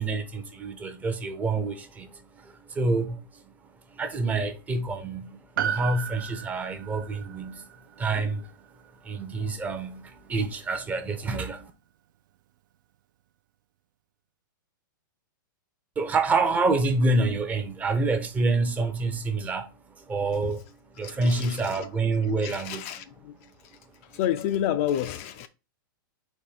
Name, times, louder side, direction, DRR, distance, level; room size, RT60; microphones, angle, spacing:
voice 1, 0.0-3.5 3.9-7.6 8.0-8.5 9.0-11.7 16.0-22.8, right 3 dB, 15° right, 0.5 m, -27 dB
Piano, 5.6-10.2 10.4-10.5, right 9 dB, 65° right, 0.4 m, -36 dB
voice 2, 21.0-21.9 22.4-23.3 23.6-23.8 24.1-25.5, left 11 dB, 40° left, 0.3 m, -30 dB
4.2 x 2.7 x 4.8 m
supercardioid pair, 155°, 11 cm